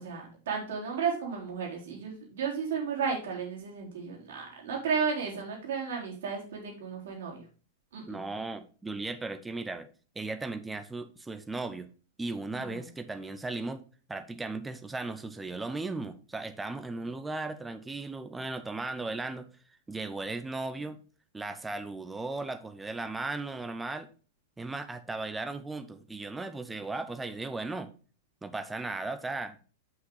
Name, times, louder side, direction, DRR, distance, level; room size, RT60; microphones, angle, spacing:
voice 1, 0.0-7.4 7.9-8.2 12.6-12.9, right 6 dB, 65° right, 3.6 m, -33 dB
voice 2, 8.1-9.9 10.1-11.9 12.2-13.8 14.1-19.5 19.9-21.0 21.3-24.1 24.6-27.9 28.4-29.6, right 3 dB, 10° right, 0.8 m, -36 dB
7.8 x 5.8 x 3.9 m
figure-of-eight pair, 95°, 0 cm